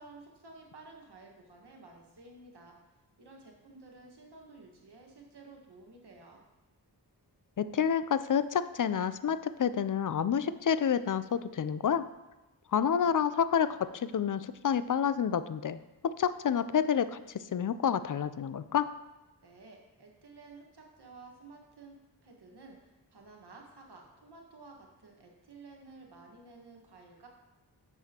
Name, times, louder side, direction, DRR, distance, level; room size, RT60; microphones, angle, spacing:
voice 1, 0.0-2.7 3.2-6.4 19.4-22.0 22.2-27.3, right 3 dB, 70° right, 1 dB, 1.6 m, -53 dB
voice 2, 7.6-12.1 12.7-15.8 16.0-18.9, left 8 dB, 50° left, 14 dB, 0.5 m, -29 dB
10.5 x 7.0 x 2.9 m, 1.1 s
cardioid pair, 45°, 41 cm